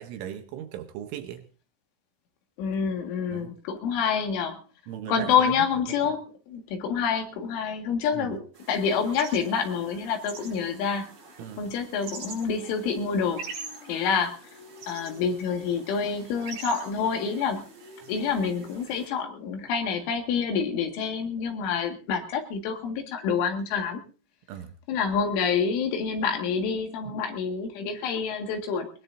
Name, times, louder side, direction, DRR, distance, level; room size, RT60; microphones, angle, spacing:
voice 1, 0.0-1.5 3.3-3.5 4.9-5.5 6.0-6.1 8.1-8.4 11.4-11.7 24.5-24.7 27.1-27.2, right 10 dB, 75° right, 7 dB, 3.3 m, -38 dB
voice 2, 2.6-4.6 5.1-11.1 11.6-13.5 13.9-14.4 14.9-17.7 18.1-24.0 24.9-28.9, left 6 dB, 75° left, 4 dB, 4.3 m, -27 dB
sound 1, 8.5-19.1, right 3 dB, 50° right, 6.7 m, -44 dB
20.5 x 20.0 x 2.7 m, 0.36 s
omnidirectional pair, 5.8 m